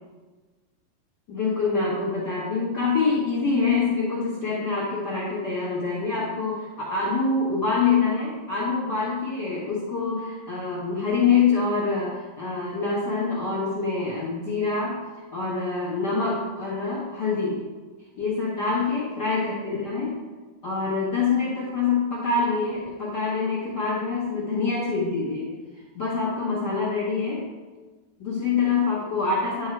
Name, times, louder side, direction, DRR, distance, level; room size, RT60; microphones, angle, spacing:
voice 1, 1.3-15.0 15.3-17.6 18.2-20.2 20.6-25.5 25.7-27.4 28.2-29.7, left 4 dB, 50° left, -7 dB, 1.3 m, -25 dB
10.0 x 3.7 x 4.5 m, 1.3 s
omnidirectional pair, 4.0 m